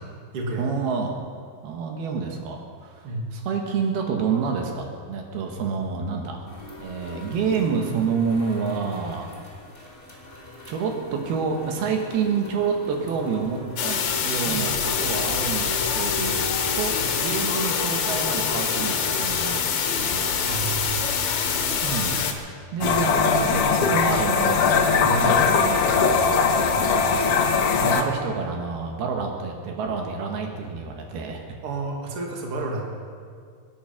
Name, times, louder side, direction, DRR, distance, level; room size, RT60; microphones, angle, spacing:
voice 1, 0.6-1.2 1.6-6.5 6.8-9.3 10.7-16.4 16.7-20.4 21.8-22.2 22.7-31.5, right 5 dB, 80° right, 2 dB, 3.4 m, -28 dB
voice 2, 3.0-3.4 14.4-14.7 20.5-21.2 25.0-25.3 31.6-32.9, right 3 dB, 40° right, 0 dB, 2.7 m, -31 dB
sound 1, 6.5-21.9, left 1 dB, 10° left, 3.6 m, -38 dB
sound 2, 13.8-22.3, left 7 dB, 60° left, 2.3 m, -25 dB
sound 3, 22.8-28.0, left 5 dB, 80° left, 1.3 m, -20 dB
25.0 x 9.6 x 5.9 m, 2.1 s
omnidirectional pair, 4.4 m